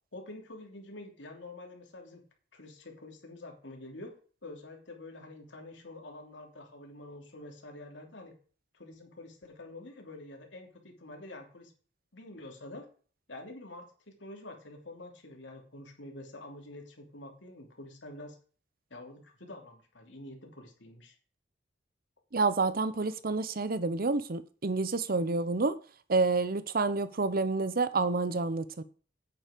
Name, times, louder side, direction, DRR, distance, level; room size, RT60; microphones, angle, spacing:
voice 1, 0.1-2.2 2.5-4.1 4.4-8.4 8.7-11.7 12.1-12.9 13.3-18.4 18.9-21.1, left 2 dB, 80° left, 2.9 m, -47 dB
voice 2, 22.3-25.8 26.1-28.8, right 3 dB, 55° right, 0.8 m, -29 dB
9.1 x 8.8 x 5.1 m
head